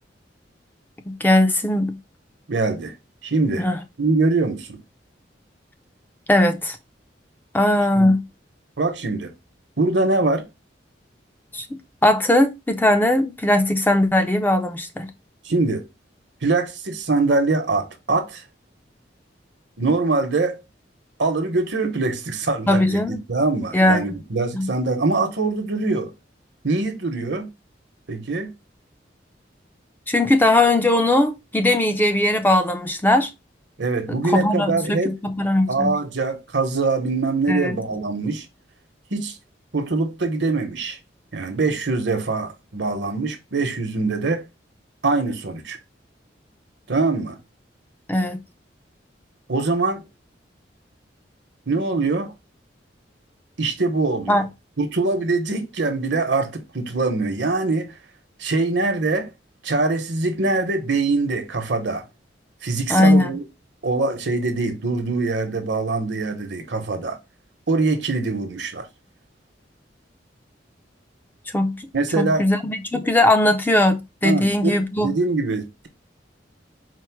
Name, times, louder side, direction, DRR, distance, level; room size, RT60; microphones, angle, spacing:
voice 1, 1.1-2.0 3.6-3.8 6.3-6.8 7.5-8.2 11.5-11.7 12.0-15.1 22.7-23.2 23.7-24.1 24.5-24.7 30.1-33.3 34.1-36.0 37.5-37.8 48.1-48.4 54.3-54.4 62.9-63.3 71.5-71.9 72.2-75.1, left 1 dB, 10° left, 0.4 m, -19 dB
voice 2, 2.5-2.9 3.2-3.7 4.0-4.8 7.9-8.1 8.8-9.3 9.8-10.5 15.4-15.9 16.4-18.4 19.8-20.6 21.2-26.1 26.6-27.5 28.1-28.5 33.8-35.2 35.7-38.5 39.1-39.4 39.7-41.0 41.3-44.4 45.0-45.8 46.9-47.4 49.5-50.0 51.7-52.3 53.6-54.4 54.8-57.9 58.4-59.3 59.6-62.0 62.6-63.4 63.8-67.2 67.7-68.9 71.9-72.4 74.2-75.9, right 3 dB, 70° right, 1.0 m, -23 dB
4.5 x 2.0 x 4.5 m
head